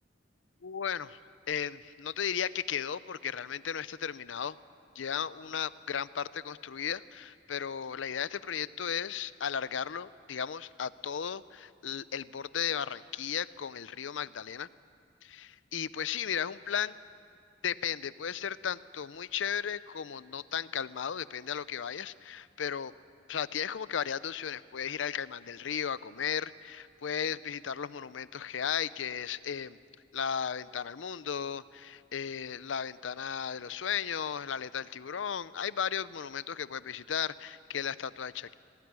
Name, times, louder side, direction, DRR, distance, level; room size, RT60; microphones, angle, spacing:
voice 1, 0.6-1.2 1.5-4.6 5.0-14.7 15.2-16.9 17.6-22.9 23.3-29.8 30.1-38.5, left 8 dB, 80° left, 17 dB, 0.6 m, -35 dB
19.0 x 18.5 x 9.6 m, 2.4 s
head